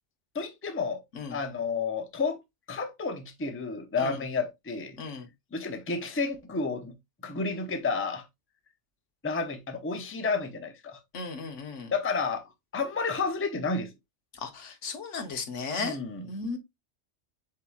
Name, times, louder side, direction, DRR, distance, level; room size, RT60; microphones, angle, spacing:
voice 1, 0.3-1.0 1.3-2.4 2.7-5.0 5.5-6.9 7.2-8.2 9.2-11.0 11.9-12.4 12.7-13.9 15.8-16.3, left 4 dB, 15° left, 0.5 m, -31 dB
voice 2, 11.1-11.9 14.3-16.0 16.3-16.6, left 4 dB, 85° left, 1.3 m, -35 dB
8.0 x 2.8 x 2.3 m
omnidirectional pair, 1.2 m